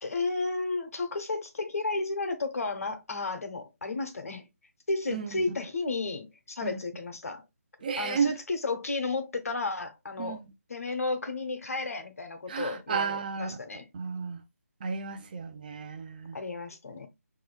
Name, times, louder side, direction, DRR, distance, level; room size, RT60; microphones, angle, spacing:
voice 1, 0.0-4.5 4.9-7.4 8.0-10.4 10.7-13.9 16.3-17.1, left 3 dB, 65° left, 1.2 m, -33 dB
voice 2, 5.1-5.4 6.6-6.8 7.8-8.4 10.2-10.5 12.5-13.6 13.9-14.4 14.8-16.4, right 6 dB, 35° right, 0.6 m, -33 dB
6.0 x 3.1 x 2.3 m
figure-of-eight pair, 155°, 9 cm